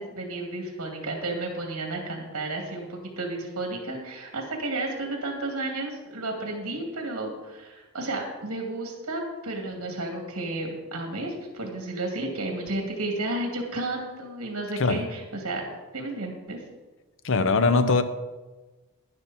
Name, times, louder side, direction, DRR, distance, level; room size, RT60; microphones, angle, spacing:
voice 1, 0.0-15.7 15.9-16.6, right 2 dB, 75° right, 2.4 m, -32 dB
voice 2, 17.2-18.0, left 3 dB, 65° left, 0.8 m, -21 dB
12.0 x 10.5 x 4.2 m
head